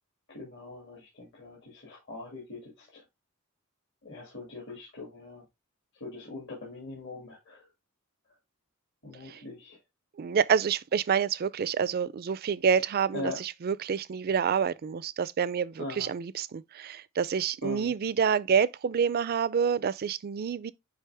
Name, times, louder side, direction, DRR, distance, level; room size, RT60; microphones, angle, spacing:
voice 1, 0.3-3.0 4.0-5.4 6.0-7.7 9.0-9.8 13.1-13.4 15.8-16.1 17.6-17.9, left 3 dB, 55° left, 2.3 m, -41 dB
voice 2, 10.2-20.7, right 7 dB, 45° right, 0.4 m, -28 dB
9.2 x 3.3 x 3.3 m
head